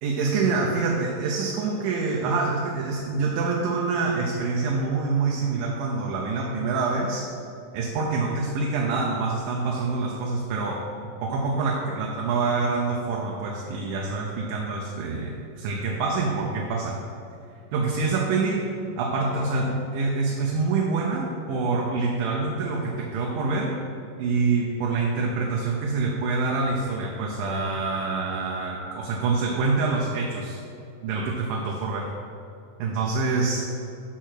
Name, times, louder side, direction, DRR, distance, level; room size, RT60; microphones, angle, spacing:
voice 1, 0.0-7.3 7.7-10.8 11.2-17.0 17.7-18.6 19.0-23.7 24.2-30.6 31.0-32.1 32.8-33.7, right 4 dB, 85° right, -1 dB, 2.5 m, -26 dB
6.4 x 6.0 x 6.0 m, 2.6 s
omnidirectional pair, 4.0 m